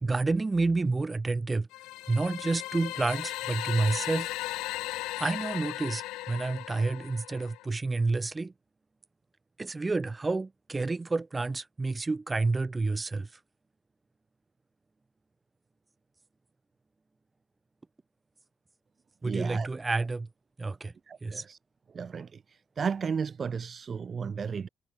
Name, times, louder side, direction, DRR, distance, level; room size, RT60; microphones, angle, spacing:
voice 1, 0.0-1.7 2.1-4.3 4.9-8.5 9.6-13.3 19.2-20.3 20.6-20.9 21.2-21.4, right 3 dB, 25° right, 1.6 m, -29 dB
sound 1, 1.7-7.6, left 19 dB, 75° left, 1.4 m, -37 dB
voice 2, 19.2-19.7 21.1-21.6 21.9-24.7, right 6 dB, 45° right, 0.9 m, -34 dB
hypercardioid pair, 55°, 0 cm